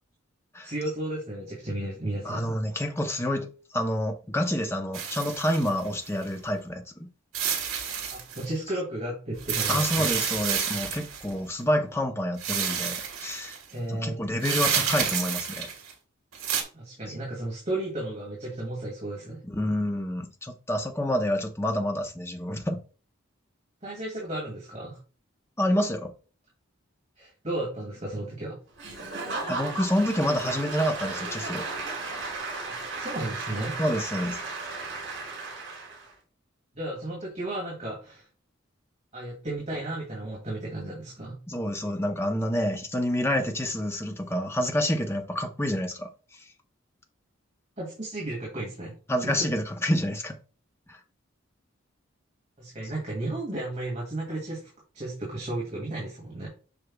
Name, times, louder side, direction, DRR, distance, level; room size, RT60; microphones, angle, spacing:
voice 1, 0.6-2.5 8.1-10.1 13.7-14.2 16.7-19.4 23.8-25.0 27.2-28.6 32.6-33.8 36.8-38.3 39.1-41.4 47.8-48.9 49.2-49.3 52.6-56.5, right 1 dB, 35° right, 2.2 m, -34 dB
voice 2, 2.2-3.5 3.7-7.1 9.7-13.6 13.9-15.7 19.5-22.8 25.6-26.1 29.5-31.7 33.8-34.4 41.5-46.1 49.1-50.3 50.9-51.0, equal, 10° left, 0.7 m, -28 dB
sound 1, 4.9-6.2 7.3-8.5 9.4-11.3 12.4-13.6 14.4-15.9 16.3-16.6, right 7 dB, 85° right, 1.4 m, -29 dB
Applause / Crowd, 28.8-36.1, right 3 dB, 70° right, 3.1 m, -35 dB
7.9 x 5.7 x 2.3 m
head